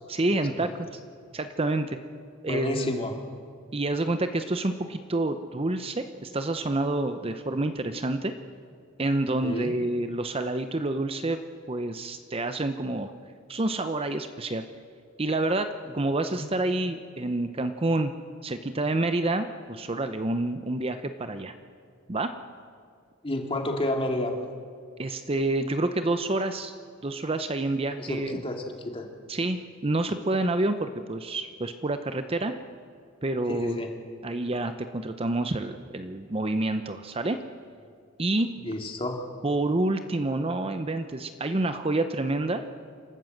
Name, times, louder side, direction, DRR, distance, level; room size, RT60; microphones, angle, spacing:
voice 1, 0.1-0.7 1.3-2.0 2.4-3.0 3.7-8.3 9.0-11.4 11.7-13.1 13.5-14.7 15.2-18.1 18.4-21.5 22.1-22.4 25.0-26.7 27.0-28.4 29.3-32.5 33.2-33.8 34.2-37.4 38.2-38.5 39.4-42.6, right 2 dB, 30° right, 9 dB, 0.7 m, -28 dB
voice 2, 2.5-3.1 9.4-9.7 16.4-16.5 23.2-24.3 28.0-29.1 33.5-33.9 38.6-39.2, left 1 dB, 30° left, 3 dB, 2.3 m, -30 dB
28.0 x 13.0 x 7.9 m, 2.2 s
head